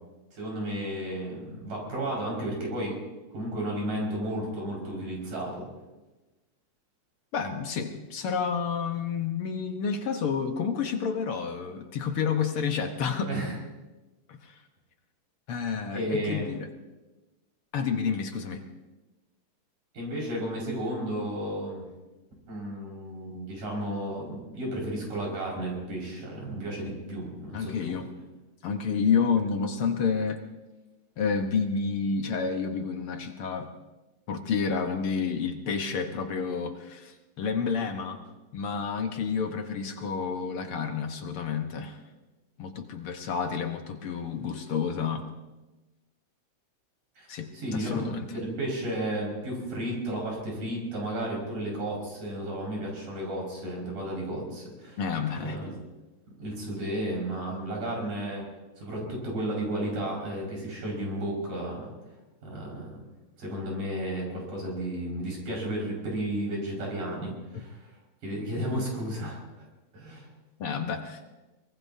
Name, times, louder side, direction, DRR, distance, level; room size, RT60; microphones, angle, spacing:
voice 1, 0.3-3.0 3.3-5.7 13.3-13.5 15.9-16.6 19.9-21.8 22.5-28.0 47.2-47.3 47.5-55.0 55.4-55.7 56.4-58.4 58.8-61.9 62.4-63.0 63.4-67.9 68.2-69.7 69.9-70.3, right 1 dB, 85° right, -2 dB, 6.8 m, -33 dB
voice 2, 7.3-13.3 14.3-14.6 15.5-16.7 17.7-18.6 27.5-28.1 28.6-30.4 31.2-33.7 34.3-38.2 38.5-42.0 42.6-45.3 47.3-48.3 55.0-55.6 70.6-71.2, left 6 dB, 60° left, 5 dB, 1.5 m, -30 dB
23.5 x 20.0 x 2.7 m, 1.1 s
omnidirectional pair, 3.6 m